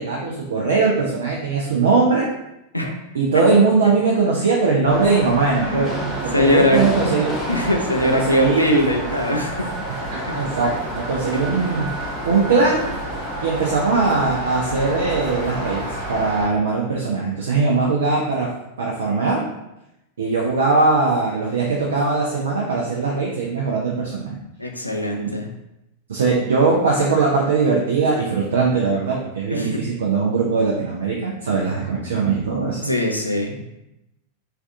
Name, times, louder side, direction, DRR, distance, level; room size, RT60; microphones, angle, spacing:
voice 1, 0.0-2.3 3.1-7.4 7.9-8.9 9.9-11.9 12.2-12.9 13.4-18.5 18.8-19.4 20.2-24.4 25.2-25.3 26.1-32.8, right 4 dB, 65° right, -2 dB, 0.4 m, -20 dB
sound 1, 4.9-16.5, right 1 dB, 45° right, 0.8 m, -31 dB
voice 2, 5.6-6.9 7.5-9.8 10.3-10.4 11.3-11.8 24.6-25.5 29.5-29.8 32.6-33.6, left 1 dB, 85° left, 2 dB, 0.4 m, -22 dB
sound 2, 5.8-16.3, equal, 10° left, 0.7 m, -33 dB
3.2 x 2.4 x 2.5 m, 0.89 s
figure-of-eight pair, 90°, 0 cm